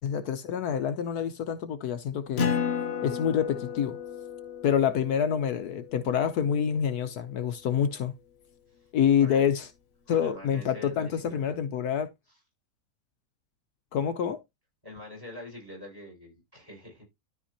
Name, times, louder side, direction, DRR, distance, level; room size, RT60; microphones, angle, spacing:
voice 1, 0.0-2.6 3.0-4.0 4.6-8.1 8.9-9.7 10.1-12.1 13.9-14.4, left 8 dB, 70° left, 1.2 m, -27 dB
Acoustic guitar, 2.4-7.3, left 7 dB, 45° left, 1.0 m, -34 dB
voice 2, 9.2-9.5 10.1-11.5 14.8-17.0, left 1 dB, 10° right, 6.0 m, -44 dB
13.0 x 4.3 x 2.9 m
omnidirectional pair, 1.8 m